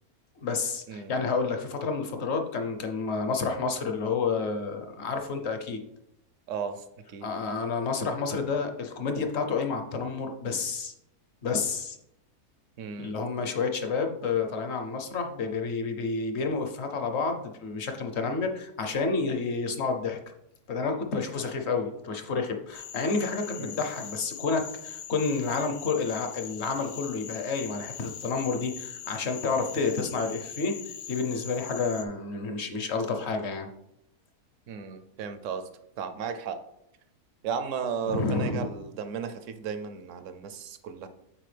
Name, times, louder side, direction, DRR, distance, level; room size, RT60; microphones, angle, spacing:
voice 1, 0.4-5.8 7.2-10.9 11.4-12.0 13.0-20.2 20.7-33.7 38.1-38.7, left 4 dB, 55° left, 5 dB, 0.9 m, -30 dB
voice 2, 6.5-7.3 12.8-13.2 23.6-23.8 34.7-35.7 36.0-36.6 37.4-41.1, right 6 dB, 65° right, 10 dB, 0.8 m, -35 dB
Cricket / Frog, 22.7-32.0, left 9 dB, 80° left, 0.5 m, -42 dB
7.5 x 4.6 x 3.3 m, 0.78 s
omnidirectional pair, 1.6 m